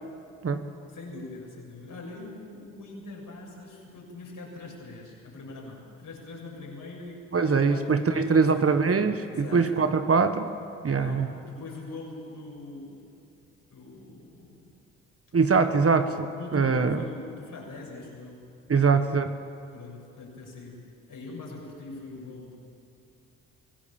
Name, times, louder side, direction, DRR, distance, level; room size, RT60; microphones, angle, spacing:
voice 1, 0.9-8.7 9.3-10.0 10.9-13.1 13.7-14.7 16.3-19.0 19.7-22.6, left 3 dB, 60° left, -2 dB, 7.1 m, -42 dB
voice 2, 7.3-10.5 10.8-11.3 15.3-17.0 18.7-19.3, right 5 dB, 40° right, 8 dB, 1.5 m, -23 dB
24.0 x 16.5 x 7.2 m, 2.7 s
hypercardioid pair, 45°, 37 cm